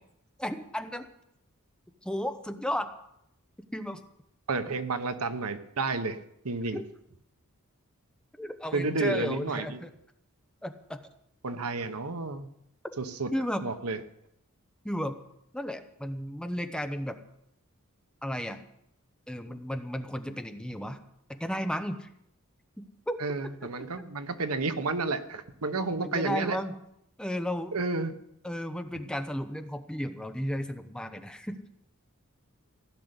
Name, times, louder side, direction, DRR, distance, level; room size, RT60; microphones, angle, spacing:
voice 1, 0.4-1.1 2.0-2.9 3.7-4.0 6.7-6.8 8.4-9.9 10.6-11.0 12.8-12.9 13.3-13.6 14.8-15.2 15.5-17.2 18.2-18.6 19.3-21.0 21.3-22.1 22.8-23.2 25.7-26.7 27.2-27.8 28.4-31.8, equal, 5° left, 8 dB, 0.8 m, -34 dB
voice 2, 4.5-6.2 6.4-6.8 8.7-9.8 11.4-12.5 13.0-13.3 13.6-14.0 23.2-26.6 27.7-28.1, right 3 dB, 80° right, 10 dB, 1.1 m, -31 dB
16.5 x 6.6 x 9.7 m, 0.78 s
head